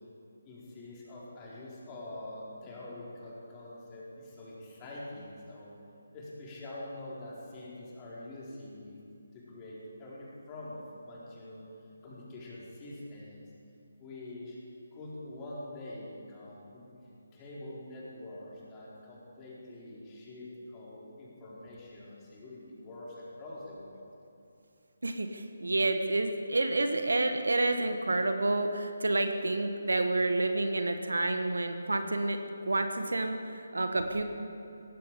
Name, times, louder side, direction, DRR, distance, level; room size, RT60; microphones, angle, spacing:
voice 1, 0.4-5.7 6.1-9.0 9.3-11.7 12.0-13.4 14.0-14.6 14.9-24.1, left 1 dB, 20° left, -7 dB, 4.8 m, -45 dB
voice 2, 25.0-33.4 33.7-34.2, right 2 dB, 75° right, 7 dB, 1.5 m, -29 dB
18.0 x 15.5 x 5.1 m, 2.6 s
figure-of-eight pair, 150°, 0 cm